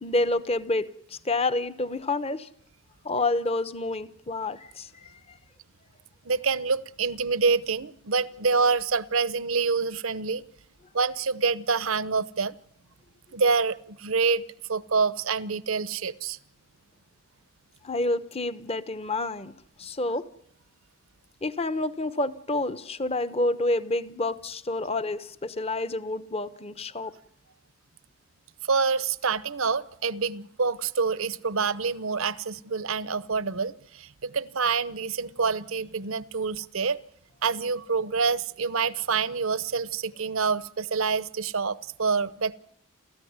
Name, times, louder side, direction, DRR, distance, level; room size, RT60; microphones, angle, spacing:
voice 1, 0.0-2.5 3.0-5.4 17.8-19.5 19.8-20.3 21.4-27.1, left 2 dB, 25° left, 0.9 m, -28 dB
voice 2, 6.2-10.5 10.9-12.5 13.3-14.4 14.7-16.4 28.6-37.0 37.4-42.5, right 5 dB, 70° right, 0.9 m, -27 dB
30.0 x 14.5 x 9.6 m
head